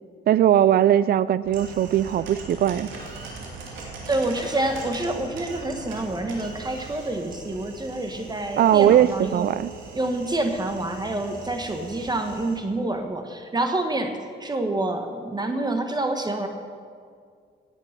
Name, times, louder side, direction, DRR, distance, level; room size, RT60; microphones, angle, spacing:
voice 1, 0.3-2.9 8.6-9.7, right 11 dB, 50° right, 17 dB, 0.4 m, -19 dB
sound 1, 1.4-12.6, right 3 dB, 85° right, 2.5 m, -41 dB
voice 2, 4.1-9.5 9.9-16.5, right 2 dB, 20° right, 5 dB, 1.2 m, -27 dB
17.0 x 8.4 x 5.8 m, 2.1 s
cardioid pair, 90°, 20 cm